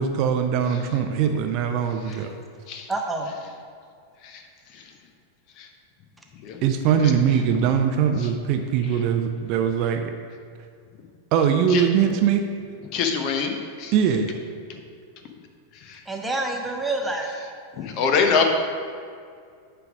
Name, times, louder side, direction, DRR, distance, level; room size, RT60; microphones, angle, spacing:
voice 1, 0.0-2.3 6.6-10.1 11.3-12.4 13.9-14.3, right 8 dB, 40° right, 5 dB, 0.5 m, -21 dB
voice 2, 2.9-3.3 16.1-17.4, right 2 dB, 5° right, 1 dB, 1.0 m, -27 dB
voice 3, 12.9-13.9 14.7-14.8 15.8-16.0 17.8-18.4, left 5 dB, 40° left, 5 dB, 0.8 m, -25 dB
9.3 x 3.4 x 6.0 m, 2.2 s
figure-of-eight pair, 90°, 0 cm